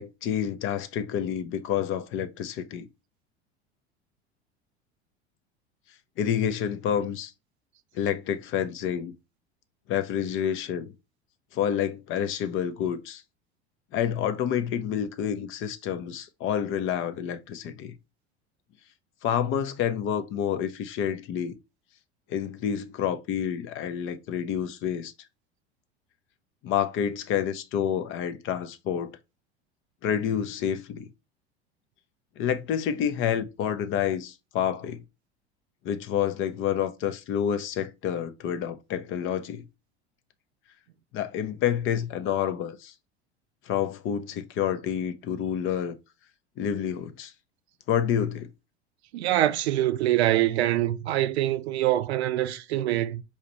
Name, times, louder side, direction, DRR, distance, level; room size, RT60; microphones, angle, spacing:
voice 1, 0.0-2.9 6.2-7.3 7.9-9.1 9.9-10.9 11.5-13.2 13.9-17.9 19.2-21.5 22.3-25.1 26.6-29.1 30.0-31.1 32.4-35.0 35.8-39.6 41.1-42.9 43.7-45.9 46.6-47.3 47.9-48.5, left 9 dB, 40° left, 0.5 m, -28 dB
voice 2, 49.1-53.2, right 13 dB, 75° right, 0.5 m, -24 dB
4.2 x 2.4 x 2.9 m
hypercardioid pair, 80°, 33 cm